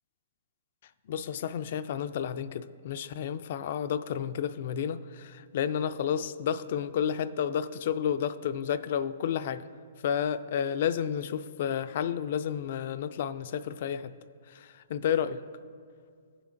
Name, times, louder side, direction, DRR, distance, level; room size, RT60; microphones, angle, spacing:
voice 1, 1.1-9.6 10.0-14.1 14.5-15.4, left 8 dB, 55° left, 13 dB, 0.4 m, -31 dB
16.0 x 6.9 x 2.6 m, 2.1 s
hypercardioid pair, 140°, 0 cm